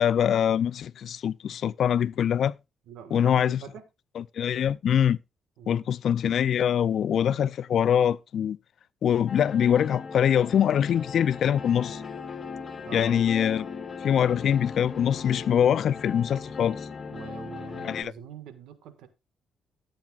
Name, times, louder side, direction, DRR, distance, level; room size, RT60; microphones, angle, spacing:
voice 1, 0.0-2.6 3.1-3.6 4.2-5.2 5.7-8.6 9.0-12.0 12.9-13.7 14.0-16.8 17.8-18.1, left 9 dB, 65° left, 0.4 m, -24 dB
voice 2, 2.9-3.8 5.6-5.9 12.8-13.2 17.1-19.1, right 7 dB, 85° right, 1.6 m, -44 dB
sound 1, 9.3-18.0, left 5 dB, 35° left, 1.8 m, -38 dB
13.5 x 8.9 x 2.4 m
cardioid pair, 90°, 0 cm